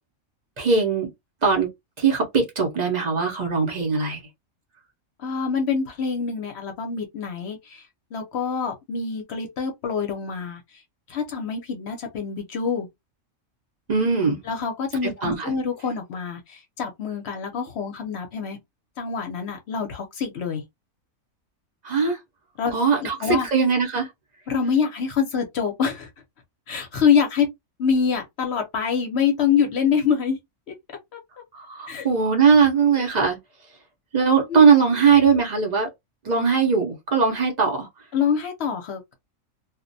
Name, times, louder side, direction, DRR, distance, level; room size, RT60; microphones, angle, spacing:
voice 1, 0.6-1.1 1.4-1.7 2.0-4.2 13.9-14.4 15.0-15.5 21.8-22.2 22.7-24.1 31.5-33.4 34.1-35.9 36.2-37.9, right 5 dB, 45° right, 0.6 m, -20 dB
voice 2, 5.2-7.8 8.1-10.6 11.1-12.9 14.5-18.6 19.0-20.6 22.6-23.5 24.5-26.1 26.7-27.5 27.8-30.4 30.7-30.8 31.1-31.2 31.9-32.1 34.5-34.6 38.1-39.1, left 6 dB, 60° left, 0.8 m, -25 dB
2.3 x 2.1 x 2.5 m
omnidirectional pair, 1.4 m